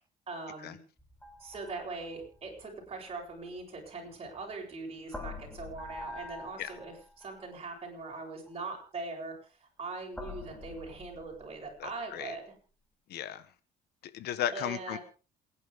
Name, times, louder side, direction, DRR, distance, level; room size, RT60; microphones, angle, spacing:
voice 1, 0.3-0.8 1.4-12.5 14.5-15.0, right 3 dB, 35° right, 0 dB, 7.9 m, -41 dB
sound 1, 1.0-4.6 5.1-7.6 8.5-8.6 10.1-12.0, left 3 dB, 5° left, 4.0 m, -46 dB
voice 2, 11.8-12.4 13.1-13.4 14.1-15.0, left 11 dB, 70° left, 13 dB, 1.4 m, -35 dB
28.0 x 10.5 x 3.7 m, 0.38 s
cardioid pair, 110°, 17 cm